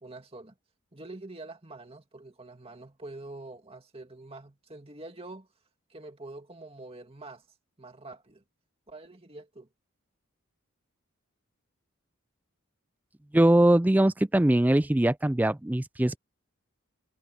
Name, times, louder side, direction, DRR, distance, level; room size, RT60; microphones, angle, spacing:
voice 1, 0.0-0.5 0.9-5.5 5.9-7.5 7.8-8.4 8.9-9.7, right 2 dB, 25° right, 2.3 m, -45 dB
voice 2, 13.3-16.2, right 1 dB, 5° right, 0.3 m, -22 dB
head